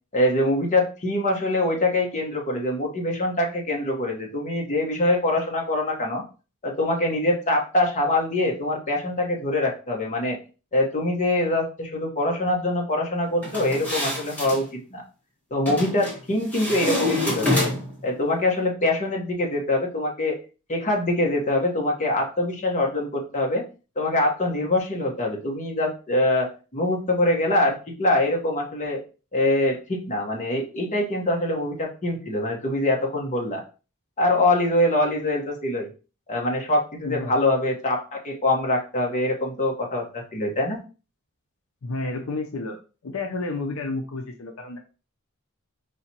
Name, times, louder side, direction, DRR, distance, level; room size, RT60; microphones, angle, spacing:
voice 1, 0.1-6.2 6.6-10.4 10.7-15.0 15.5-17.7 18.0-20.4 20.7-23.6 24.0-29.0 29.3-33.6 34.2-35.9 36.3-40.8, left 1 dB, 35° left, 1 dB, 1.1 m, -24 dB
sound 1, 13.4-14.6 15.7-16.2 16.5-18.0, left 1 dB, 10° left, 1.8 m, -26 dB
voice 2, 37.0-37.3 41.8-44.8, left 3 dB, 70° left, 4 dB, 0.6 m, -31 dB
4.9 x 2.9 x 2.9 m, 0.33 s
head